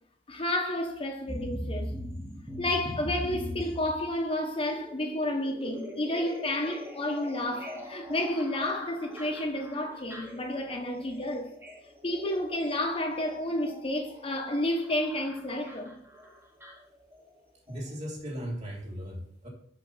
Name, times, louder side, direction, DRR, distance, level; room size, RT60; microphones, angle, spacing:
voice 1, 0.3-1.9 2.6-11.5 12.0-16.0, left 1 dB, 30° left, 1.0 m, -31 dB
sound 1, 1.3-17.4 17.7-17.8, equal, 15° right, 1.1 m, -41 dB
voice 2, 17.7-19.5, equal, 40° right, 2.9 m, -37 dB
6.4 x 6.0 x 5.6 m
head